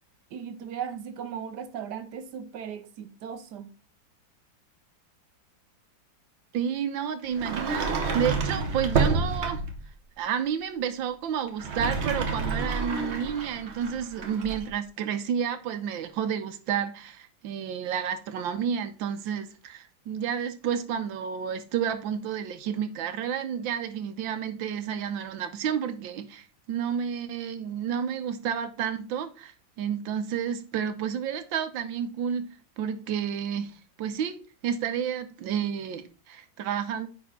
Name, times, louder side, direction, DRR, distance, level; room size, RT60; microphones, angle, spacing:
voice 1, 0.3-3.7, right 8 dB, 70° right, 1.2 m, -37 dB
voice 2, 6.5-9.6 10.2-29.5 29.8-32.5 32.8-33.7 34.0-37.1, right 8 dB, 90° right, 1.6 m, -30 dB
Sliding door, 7.3-9.8 11.5-14.7, right 4 dB, 45° right, 1.1 m, -29 dB
9.4 x 4.3 x 3.7 m
omnidirectional pair, 2.0 m